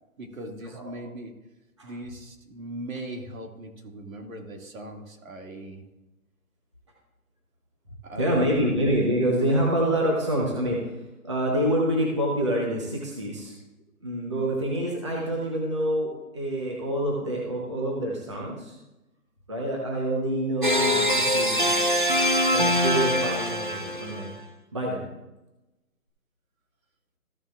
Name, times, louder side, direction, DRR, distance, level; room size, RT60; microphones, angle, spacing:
voice 1, 0.2-1.4 1.8-5.8 8.0-8.8, right 1 dB, 65° right, 2 dB, 2.2 m, -39 dB
voice 2, 8.2-10.9 11.2-13.5 14.0-18.7 19.5-21.9 22.5-24.3 24.7-25.1, right 1 dB, 20° right, -3 dB, 0.9 m, -26 dB
sound 1, 20.6-24.3, equal, 35° right, 0.5 m, -23 dB
14.5 x 7.2 x 2.4 m, 0.99 s
hypercardioid pair, 175°, 44 cm